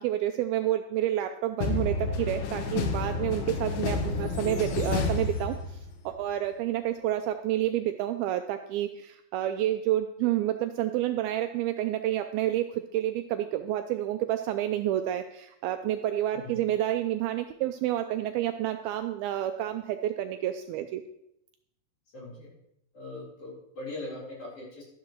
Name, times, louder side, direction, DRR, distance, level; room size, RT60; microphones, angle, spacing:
voice 1, 0.0-5.8 6.1-21.0, right 12 dB, 85° right, 7 dB, 2.2 m, -29 dB
sound 1, 1.6-6.1, left 4 dB, 75° left, 2.5 m, -30 dB
voice 2, 22.1-22.5 22.9-24.8, left 2 dB, 35° left, -5 dB, 4.4 m, -40 dB
12.0 x 11.0 x 3.0 m, 0.77 s
omnidirectional pair, 4.8 m